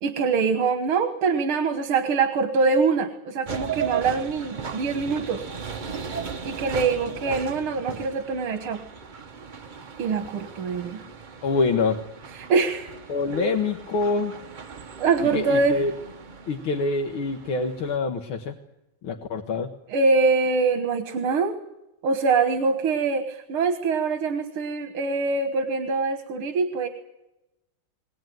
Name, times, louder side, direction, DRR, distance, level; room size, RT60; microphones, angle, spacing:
voice 1, 0.0-5.5 6.4-8.8 10.0-11.0 12.3-12.9 13.3-13.4 15.0-15.8 19.9-21.6 22.0-26.9, right 4 dB, 85° right, 7 dB, 2.2 m, -24 dB
sound 1, 3.5-18.0, right 6 dB, 65° right, 0.4 m, -37 dB
voice 2, 11.4-12.0 13.1-14.3 15.3-15.9 16.5-18.6 19.0-19.7, left 3 dB, 75° left, 3 dB, 2.1 m, -25 dB
22.0 x 18.0 x 9.3 m, 0.94 s
omnidirectional pair, 2.3 m